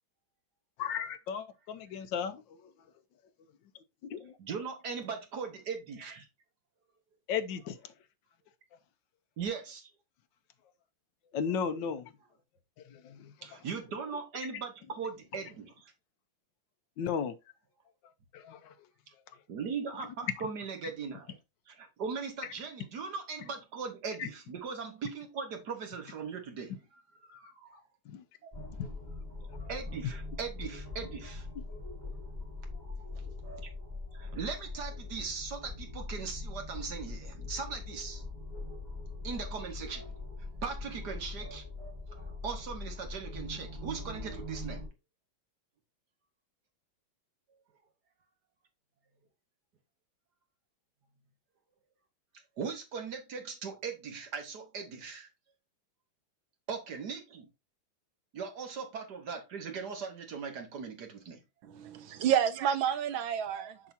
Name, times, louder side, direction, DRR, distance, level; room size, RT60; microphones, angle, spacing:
voice 1, 0.8-2.7 4.1-4.4 7.3-7.8 11.3-12.1 12.8-13.3 14.5-14.6 17.0-17.4 18.3-18.7 20.4-20.5 24.2-24.3 28.1-28.2 28.8-28.9 31.5-31.6, left 7 dB, 70° left, 1.4 m, -35 dB
voice 2, 4.4-6.3 9.4-9.9 13.4-15.9 19.5-21.4 21.7-26.7 27.6-27.7 28.4-28.5 29.7-31.5 32.9-33.0 34.1-38.2 39.2-40.1 40.6-41.7 42.4-44.9 52.6-55.3 56.7-57.5 58.3-61.4, right 5 dB, 55° right, 1.7 m, -39 dB
sound 1, 28.5-44.9, left 2 dB, 20° right, 4.3 m, -42 dB
voice 3, 61.6-63.9, right 9 dB, 75° right, 1.6 m, -30 dB
7.0 x 6.0 x 2.7 m
omnidirectional pair, 2.2 m